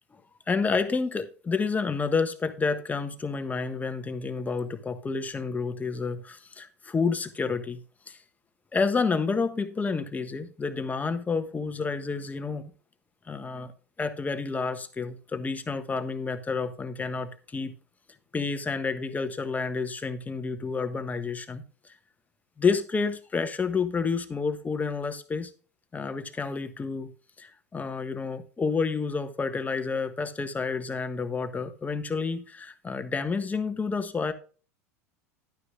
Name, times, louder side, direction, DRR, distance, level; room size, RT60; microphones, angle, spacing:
voice 1, 0.5-8.2 8.7-12.7 13.3-13.7 14.0-17.7 18.3-21.6 22.6-25.5 25.9-27.1 27.4-34.3, left 4 dB, 20° left, 1.4 m, -29 dB
11.5 x 9.6 x 2.5 m
hypercardioid pair, 80°, 8 cm